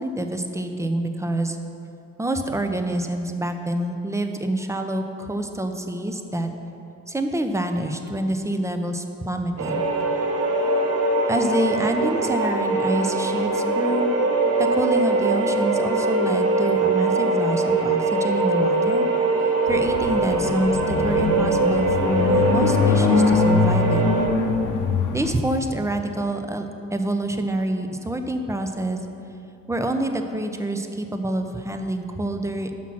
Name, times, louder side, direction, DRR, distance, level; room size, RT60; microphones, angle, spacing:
voice 1, 0.0-1.6 2.2-6.5 7.1-9.8 11.3-14.1 14.6-19.1 19.7-24.2 25.1-29.0 29.7-32.7, right 1 dB, 10° right, 6 dB, 0.5 m, -27 dB
sound 1, 9.6-24.3, right 2 dB, 55° right, 1.0 m, -22 dB
sound 2, 19.7-25.3, left 5 dB, 80° left, 0.6 m, -23 dB
5.9 x 5.6 x 6.1 m, 2.8 s
cardioid pair, 90°, 30 cm